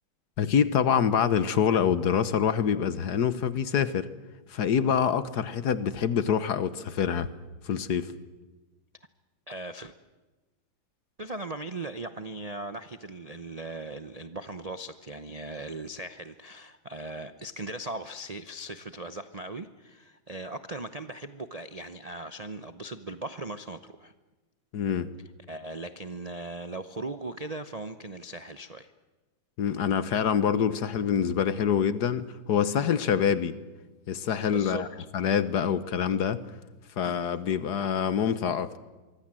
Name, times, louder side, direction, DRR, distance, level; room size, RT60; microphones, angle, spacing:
voice 1, 0.4-4.1 4.5-7.3 7.6-8.1 24.7-25.1 29.6-33.6 34.1-34.9 35.1-36.4 37.0-38.7, left 8 dB, 60° left, 1.5 m, -26 dB
voice 2, 9.5-9.9 11.2-24.1 25.5-28.9 32.8-32.9 34.5-35.1 37.0-37.4, right 2 dB, 75° right, 0.3 m, -39 dB
25.0 x 24.0 x 7.7 m
omnidirectional pair, 2.1 m